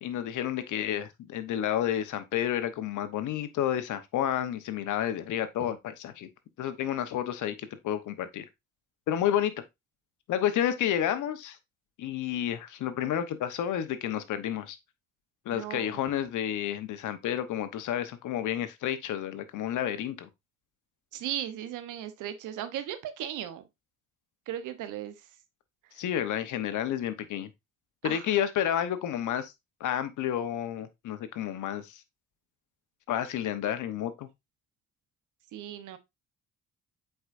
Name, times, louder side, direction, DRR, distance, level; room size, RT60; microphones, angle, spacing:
voice 1, 0.0-6.3 6.6-8.4 9.1-9.5 10.3-11.6 12.0-14.8 15.5-20.3 26.0-27.5 28.0-29.5 29.8-32.0 33.1-34.3, left 10 dB, 80° left, 1.0 m, -30 dB
voice 2, 15.5-16.0 21.1-23.6 24.5-25.1 28.0-28.3 35.5-36.0, right 11 dB, 85° right, 1.0 m, -36 dB
7.9 x 4.7 x 2.6 m
cardioid pair, 90°, 30 cm